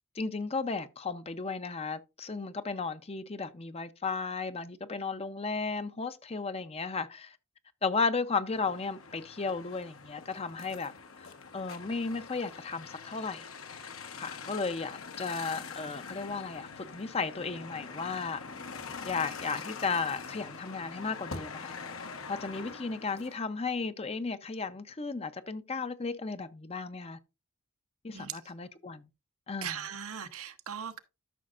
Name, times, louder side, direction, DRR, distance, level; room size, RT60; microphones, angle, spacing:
voice 1, 0.2-7.4 7.8-10.9 11.2-11.3 11.5-13.5 14.2-18.4 19.0-21.7 22.3-27.2 28.0-29.0 29.5-29.8, left 4 dB, 30° left, 0.7 m, -34 dB
sound 1, 8.5-23.4, left 5 dB, 70° left, 1.2 m, -44 dB
voice 2, 29.6-31.0, right 8 dB, 80° right, 1.0 m, -39 dB
13.0 x 6.3 x 2.5 m
head